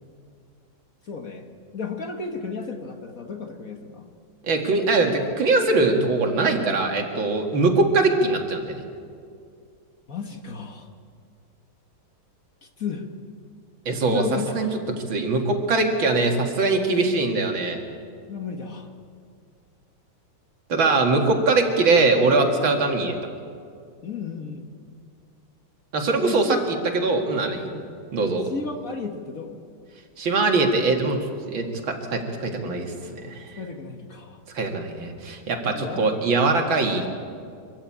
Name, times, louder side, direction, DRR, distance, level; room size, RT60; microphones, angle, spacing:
voice 1, 1.1-1.4 1.7-4.1 10.1-10.9 12.8-13.0 14.1-14.8 18.3-18.9 24.0-24.7 26.2-26.6 27.7-27.9 28.5-29.6 33.4-34.4 35.7-36.2, left 5 dB, 45° left, 4 dB, 1.6 m, -33 dB
voice 2, 4.5-8.8 13.9-14.2 14.5-14.7 15.1-17.8 20.7-23.2 25.9-27.7 28.1-28.5 30.2-31.2 31.5-33.5 34.5-37.1, right 3 dB, 70° right, 3 dB, 2.8 m, -22 dB
25.0 x 14.0 x 8.7 m, 2.3 s
omnidirectional pair, 2.3 m